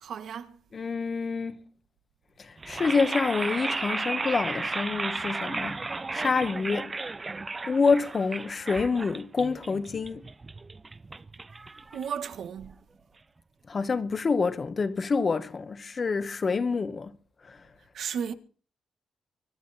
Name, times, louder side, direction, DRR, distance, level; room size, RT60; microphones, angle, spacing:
voice 1, 0.0-0.6 11.9-12.8 17.9-18.3, right 7 dB, 75° right, 1.7 m, -34 dB
voice 2, 0.7-1.6 2.4-5.8 6.1-6.9 7.7-10.2 13.7-17.1 17.5-17.6, left 4 dB, 45° left, 1.7 m, -27 dB
sound 1, 2.6-12.6, right 3 dB, 30° right, 0.7 m, -34 dB
24.5 x 10.5 x 4.4 m
cardioid pair, 60°, 0 cm